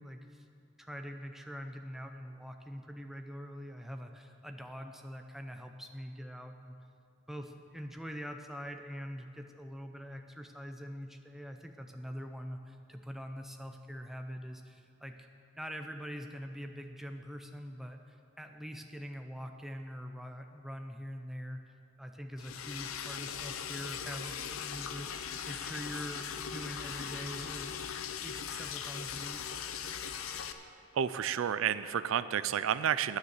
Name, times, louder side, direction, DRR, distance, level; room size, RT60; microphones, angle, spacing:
voice 1, 0.0-6.8 7.3-15.1 15.6-18.0 18.4-21.6 22.0-27.8 28.2-29.4, equal, ahead, 5 dB, 0.6 m, -44 dB
Liquid, 22.4-30.5, left 7 dB, 85° left, 0.6 m, -39 dB
voice 2, 31.0-33.2, right 8 dB, 75° right, 15 dB, 0.4 m, -30 dB
9.9 x 9.5 x 6.5 m, 2.5 s
head